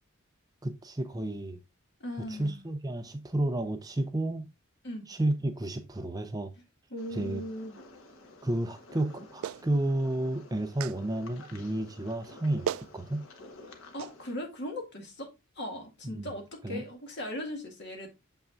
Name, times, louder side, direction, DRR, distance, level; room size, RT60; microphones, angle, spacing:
voice 1, 0.6-1.6 2.3-4.5 5.1-6.5 7.1-7.4 8.4-13.3 16.0-16.3 16.6-16.8, right 1 dB, 15° right, 0.5 m, -31 dB
voice 2, 2.0-2.6 4.8-5.1 6.9-7.8 13.9-15.3 15.6-18.1, left 1 dB, 55° left, 2.2 m, -38 dB
sound 1, 7.0-14.3, left 2 dB, 75° left, 1.2 m, -52 dB
Clapping, 9.4-9.7 10.8-11.0 12.2-12.3 12.7-12.9 14.0-14.1, right 9 dB, 75° right, 0.3 m, -34 dB
7.1 x 5.6 x 2.5 m
head